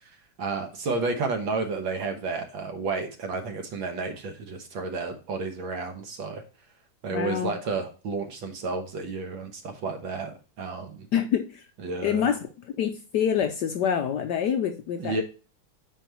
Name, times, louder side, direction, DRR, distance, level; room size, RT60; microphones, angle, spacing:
voice 1, 0.4-6.4 7.0-11.1 11.8-12.3 15.0-15.2, right 3 dB, 70° right, 5 dB, 1.9 m, -31 dB
voice 2, 7.1-7.5 11.1-11.7 12.0-15.2, left 8 dB, 70° left, 6 dB, 1.0 m, -26 dB
9.2 x 4.6 x 3.0 m, 0.34 s
omnidirectional pair, 2.3 m